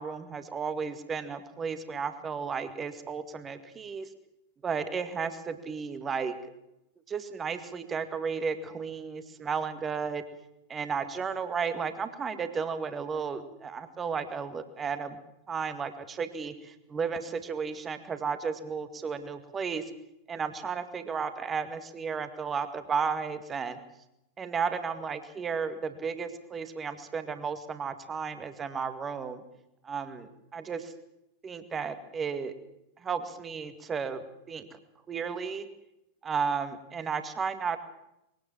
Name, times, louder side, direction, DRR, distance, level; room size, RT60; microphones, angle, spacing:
voice 1, 0.0-4.1 4.6-6.3 7.1-10.2 10.7-15.2 15.5-19.8 20.3-23.8 24.4-29.4 29.8-30.9 31.4-32.5 33.0-34.7 35.1-35.7 36.2-37.8, right 5 dB, 20° right, 10 dB, 2.1 m, -33 dB
22.5 x 17.5 x 7.5 m, 0.86 s
figure-of-eight pair, 90°, 0 cm